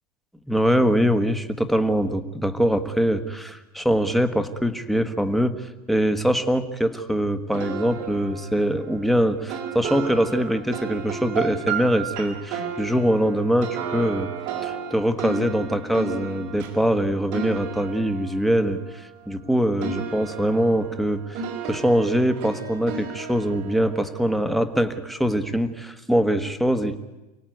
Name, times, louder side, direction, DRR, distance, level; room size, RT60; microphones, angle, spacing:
voice 1, 0.5-5.6 5.9-14.3 14.6-27.0, equal, ahead, 9 dB, 1.4 m, -23 dB
sound 1, 7.5-19.5 19.8-25.0, right 6 dB, 50° right, 4.6 m, -34 dB
29.0 x 17.5 x 9.3 m, 1.1 s
supercardioid pair, 150°, 18 cm